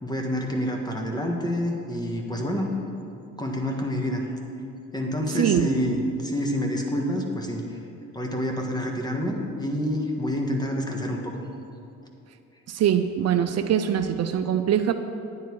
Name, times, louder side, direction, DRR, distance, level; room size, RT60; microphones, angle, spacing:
voice 1, 0.0-2.7 3.4-4.2 4.9-7.8 8.1-11.3, equal, 15° left, 1 dB, 1.6 m, -28 dB
voice 2, 5.3-5.7 12.7-14.9, right 9 dB, 60° right, 8 dB, 0.5 m, -23 dB
10.5 x 9.4 x 4.7 m, 2.6 s
cardioid pair, 90°, 30 cm